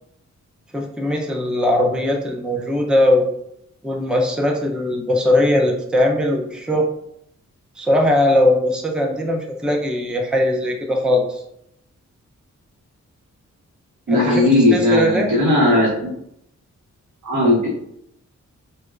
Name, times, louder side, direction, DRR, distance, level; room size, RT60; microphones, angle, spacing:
voice 1, 0.7-3.3 3.8-6.9 7.8-11.4 14.1-14.5 14.7-15.3, left 1 dB, 5° right, 1 dB, 0.4 m, -19 dB
voice 2, 14.1-16.1 17.2-17.7, left 1 dB, 70° right, -6 dB, 1.0 m, -17 dB
4.0 x 2.2 x 2.3 m, 0.74 s
wide cardioid pair, 110°, 30 cm